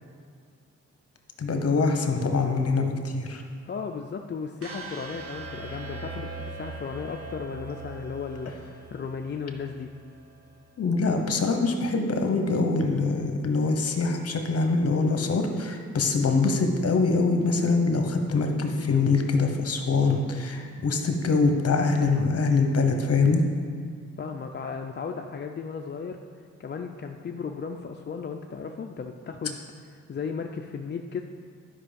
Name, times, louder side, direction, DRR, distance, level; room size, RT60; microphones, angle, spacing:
voice 1, 1.4-3.4 10.8-23.4, left 3 dB, 55° left, 5 dB, 1.0 m, -24 dB
voice 2, 3.6-9.9 24.2-26.2 26.6-29.6 30.1-31.2, left 5 dB, 40° left, 3 dB, 0.5 m, -35 dB
sound 1, 4.6-10.7, right 3 dB, 50° right, 1.3 m, -41 dB
11.0 x 5.5 x 5.2 m, 2.1 s
wide cardioid pair, 105°, 29 cm